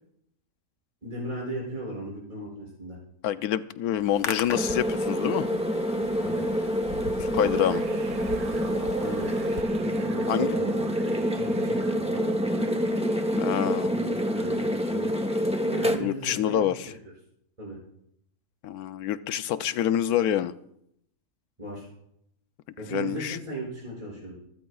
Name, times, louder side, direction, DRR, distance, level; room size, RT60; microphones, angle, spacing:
voice 1, 1.0-3.0 6.2-6.5 8.9-9.3 9.8-10.8 11.4-12.3 13.9-15.1 15.7-16.9 17.6-17.8 21.6-21.9 22.8-24.4, right 1 dB, 25° right, -6 dB, 6.5 m, -37 dB
voice 2, 3.2-5.5 7.2-7.8 10.3-10.6 13.4-13.9 16.0-16.9 18.6-20.5 22.9-23.4, left 11 dB, 90° left, 13 dB, 1.2 m, -27 dB
Hands, 3.9-9.6, left 6 dB, 60° left, 1.2 m, -40 dB
sound 1, 4.5-16.0, equal, 5° right, 0.7 m, -27 dB
sound 2, 7.4-13.9, right 9 dB, 80° right, 1.2 m, -41 dB
25.5 x 14.5 x 2.4 m, 0.76 s
omnidirectional pair, 1.5 m